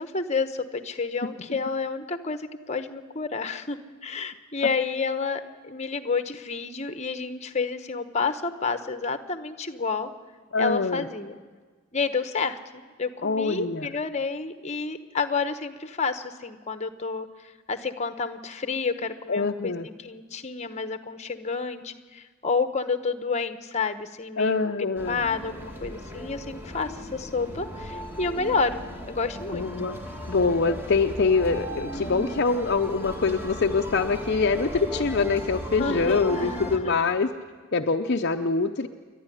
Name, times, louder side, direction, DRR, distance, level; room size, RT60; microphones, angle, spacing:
voice 1, 0.0-10.1 10.6-11.3 11.9-17.3 17.7-24.7 25.1-29.7 35.8-36.4 36.8-36.9, left 4 dB, 30° left, 10 dB, 1.1 m, -30 dB
voice 2, 10.5-11.1 13.2-13.9 19.3-19.9 24.4-25.2 29.5-30.0 30.3-37.3 37.7-38.9, left 4 dB, 50° left, 4 dB, 0.7 m, -24 dB
sound 1, 24.9-36.8, equal, 10° right, 2.1 m, -36 dB
28.5 x 11.5 x 9.9 m, 1.4 s
head